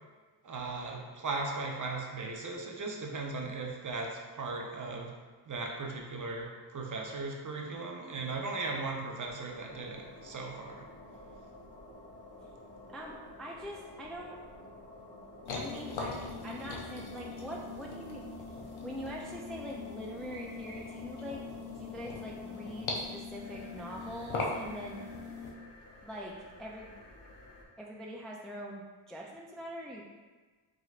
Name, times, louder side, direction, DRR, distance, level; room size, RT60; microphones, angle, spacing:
voice 1, 0.4-5.1 5.5-10.9, right 3 dB, 40° right, 1 dB, 0.8 m, -37 dB
sound 1, 9.2-27.7, left 1 dB, 30° left, 1.0 m, -52 dB
voice 2, 12.9-14.4 15.5-16.2 16.4-18.2 18.8-21.4 21.7-25.0 26.0-26.9 27.8-30.0, equal, ahead, -2 dB, 0.4 m, -43 dB
sound 2, 15.5-25.5, left 3 dB, 80° left, 0.8 m, -40 dB
5.0 x 3.0 x 2.4 m, 1.4 s
cardioid pair, 65°, 47 cm